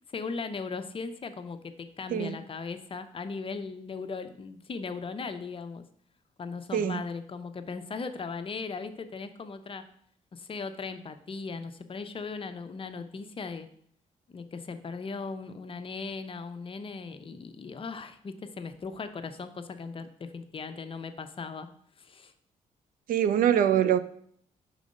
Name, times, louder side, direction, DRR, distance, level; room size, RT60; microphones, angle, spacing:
voice 1, 0.1-5.8 6.4-9.8 10.3-13.7 14.3-21.7 22.0-22.3, left 4 dB, 40° left, 0.6 m, -38 dB
voice 2, 23.1-24.0, right 10 dB, 70° right, 0.4 m, -23 dB
5.0 x 3.8 x 5.2 m
cardioid pair, 75°, 15 cm